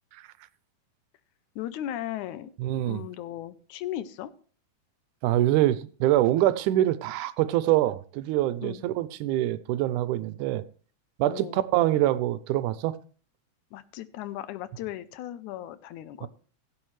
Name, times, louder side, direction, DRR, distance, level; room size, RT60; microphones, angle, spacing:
voice 1, 1.6-2.5 2.8-4.3 8.6-8.8 11.2-11.6 13.7-16.3, left 12 dB, 80° left, 2.1 m, -36 dB
voice 2, 2.6-3.0 5.2-10.6 11.2-12.9 16.2-16.3, right 14 dB, 85° right, 2.1 m, -25 dB
16.5 x 8.5 x 3.2 m
omnidirectional pair, 3.5 m